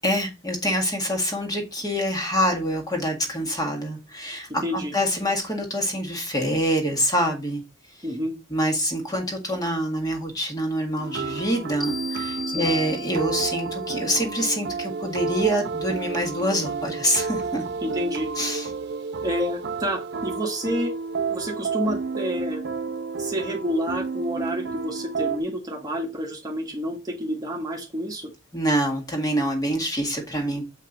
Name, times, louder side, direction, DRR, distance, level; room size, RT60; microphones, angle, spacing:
voice 1, 0.0-7.6 8.5-17.6 18.4-18.7 28.5-30.7, equal, 20° left, 1.8 m, -26 dB
voice 2, 4.5-4.9 8.0-8.3 12.5-12.7 17.8-18.3 19.2-20.9 21.3-22.6 23.2-28.3, equal, 20° right, 1.3 m, -29 dB
sound 1, 11.0-25.4, right 4 dB, 55° right, 0.7 m, -31 dB
sound 2, 11.8-13.6, left 3 dB, ahead, 0.4 m, -34 dB
7.3 x 5.3 x 3.9 m
head